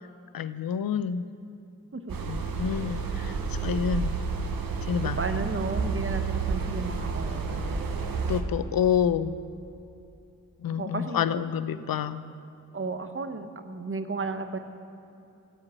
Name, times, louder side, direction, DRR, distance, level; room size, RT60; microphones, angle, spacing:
voice 1, 0.3-1.2 2.3-4.1 4.9-5.2 8.3-9.3 10.6-12.2, left 8 dB, 80° left, 13 dB, 0.5 m, -28 dB
sound 1, 2.1-8.4, right 5 dB, 85° right, 0.9 m, -30 dB
voice 2, 3.2-3.6 5.2-7.8 10.8-11.3 12.7-14.6, right 3 dB, 40° right, 7 dB, 1.0 m, -34 dB
13.5 x 5.1 x 8.6 m, 2.8 s
cardioid pair, 40°, 34 cm